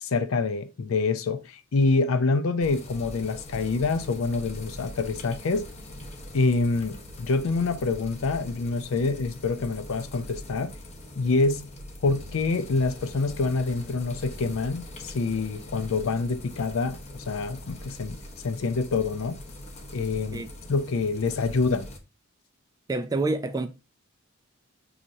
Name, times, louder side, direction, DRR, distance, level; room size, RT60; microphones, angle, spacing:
voice 1, 0.0-5.7 6.3-10.7 11.2-11.7 12.0-17.0 17.3-18.2 18.4-19.4 19.9-20.4 20.7-21.9, left 3 dB, 70° left, 0.5 m, -26 dB
sound 1, 2.6-22.0, left 1 dB, 35° left, 0.7 m, -42 dB
voice 2, 22.9-23.7, right 2 dB, 20° right, 0.3 m, -27 dB
6.2 x 2.9 x 2.7 m
head